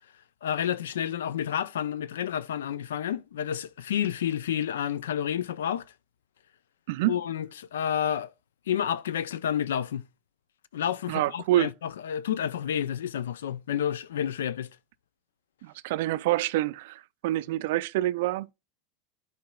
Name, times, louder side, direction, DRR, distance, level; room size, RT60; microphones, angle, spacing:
voice 1, 0.4-5.9 7.1-8.3 8.7-10.1 10.7-14.7, left 9 dB, 85° left, 0.4 m, -30 dB
voice 2, 11.1-11.7 15.6-18.5, right 15 dB, 70° right, 0.4 m, -27 dB
11.5 x 4.3 x 2.3 m
hypercardioid pair, 100°, 0 cm